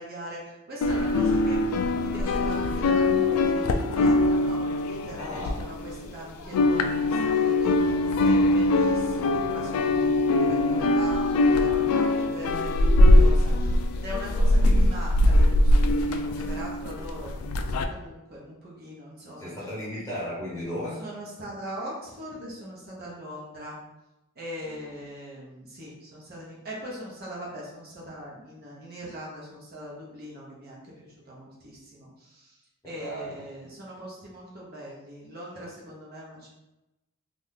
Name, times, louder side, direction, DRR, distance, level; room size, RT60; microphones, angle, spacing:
voice 1, 0.0-19.5 21.0-23.8 24.4-32.6 32.8-36.5, equal, 45° right, -5 dB, 0.8 m, -41 dB
sound 1, 0.8-6.1 6.4-17.8, left 2 dB, 80° left, 0.3 m, -22 dB
voice 2, 5.2-5.6 19.4-21.0 24.6-24.9 32.8-33.3, equal, 15° left, -9 dB, 0.9 m, -35 dB
2.8 x 2.5 x 3.5 m, 0.96 s
head